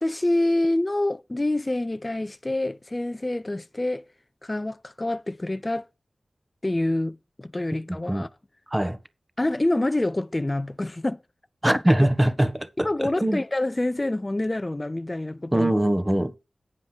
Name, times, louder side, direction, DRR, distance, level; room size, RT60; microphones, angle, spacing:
voice 1, 0.0-4.0 4.4-5.9 6.6-8.3 9.4-11.2 11.7-12.1 12.8-15.7, left 1 dB, 30° left, 0.6 m, -26 dB
voice 2, 11.6-13.4 15.5-16.3, right 1 dB, 15° right, 1.4 m, -22 dB
9.8 x 5.3 x 6.0 m
cardioid pair, 50°, 0 cm